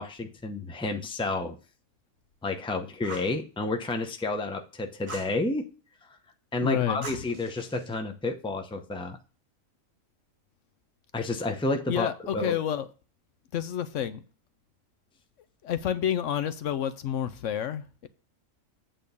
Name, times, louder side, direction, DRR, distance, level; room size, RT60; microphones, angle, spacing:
voice 1, 0.0-1.6 2.4-5.7 6.5-9.2 11.1-12.6, left 2 dB, 5° left, 0.6 m, -30 dB
Fire, 3.0-3.4 5.1-5.4 7.0-7.9, right 2 dB, 25° right, 1.4 m, -42 dB
voice 2, 6.6-7.2 11.9-12.9 13.5-14.2 15.6-18.1, left 10 dB, 70° left, 0.9 m, -29 dB
8.5 x 3.7 x 6.8 m
omnidirectional pair, 1.4 m